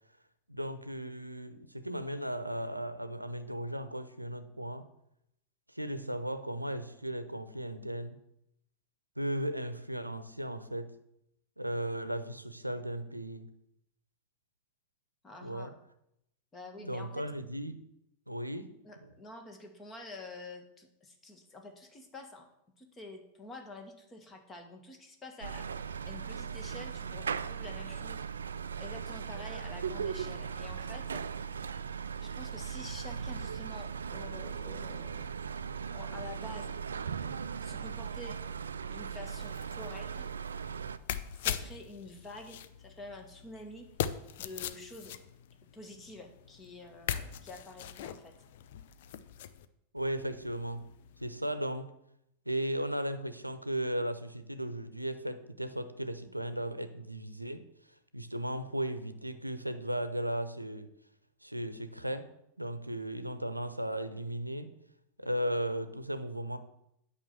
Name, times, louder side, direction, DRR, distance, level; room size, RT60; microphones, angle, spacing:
voice 1, 0.5-4.9 5.7-8.2 9.2-10.9 11.6-13.5 15.4-15.7 16.8-17.8 18.3-18.7 49.9-50.8 51.2-51.9 52.5-57.6 58.1-60.9 61.4-62.3 62.6-64.7 65.2-66.6, right 1 dB, 85° right, 12 dB, 0.8 m, -36 dB
voice 2, 15.2-15.8 16.5-17.2 18.8-22.5 22.8-28.2 28.8-31.3 32.2-35.3 35.9-36.8 37.6-38.4 38.9-40.3 41.4-43.9 44.4-45.2 45.7-48.4, left 2 dB, 20° left, 5 dB, 1.9 m, -48 dB
sound 1, 25.4-41.0, right 6 dB, 70° right, 0.4 m, -38 dB
sound 2, 39.2-49.7 50.0-51.3, left 10 dB, 55° left, 0.6 m, -41 dB
9.1 x 5.7 x 7.6 m, 0.79 s
figure-of-eight pair, 90°, 0 cm